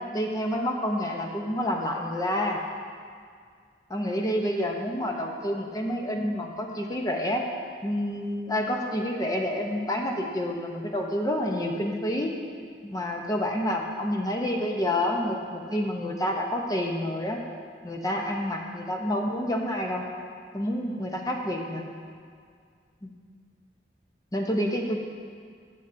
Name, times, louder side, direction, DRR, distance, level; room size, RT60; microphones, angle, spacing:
voice 1, 0.1-2.6 3.9-7.4 7.8-12.3 12.8-17.4 17.8-20.1 20.5-21.9 23.0-23.1 24.3-25.0, left 1 dB, 20° left, 1 dB, 0.7 m, -28 dB
13.0 x 8.0 x 2.6 m, 2.1 s
head